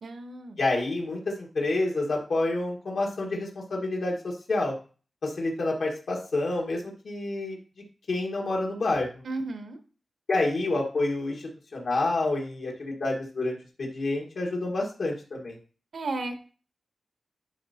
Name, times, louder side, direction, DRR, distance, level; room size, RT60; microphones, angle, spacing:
voice 1, 0.0-0.6 9.2-9.8 15.9-16.3, right 2 dB, 80° right, 7 dB, 1.0 m, -33 dB
voice 2, 0.6-4.7 5.2-7.6 8.1-9.1 10.3-15.6, left 2 dB, 75° left, -1 dB, 1.6 m, -28 dB
11.0 x 4.2 x 2.8 m, 0.38 s
wide cardioid pair, 145°, 0 cm